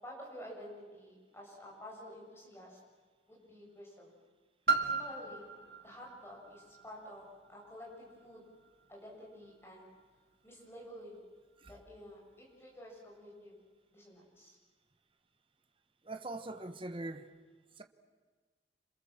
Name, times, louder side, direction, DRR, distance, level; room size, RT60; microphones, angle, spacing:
voice 1, 0.0-2.8 3.3-4.1 4.8-5.5 5.8-8.4 8.9-9.9 10.4-11.2 11.6-13.5 13.9-14.6, equal, 15° left, 7.3 m, -50 dB
Piano, 4.7-10.1 10.8-10.9, right 3 dB, 65° right, 2.4 m, -38 dB
voice 2, 16.0-17.3 17.8-17.9, right 2 dB, 30° right, 1.4 m, -42 dB
27.5 x 27.0 x 7.5 m
head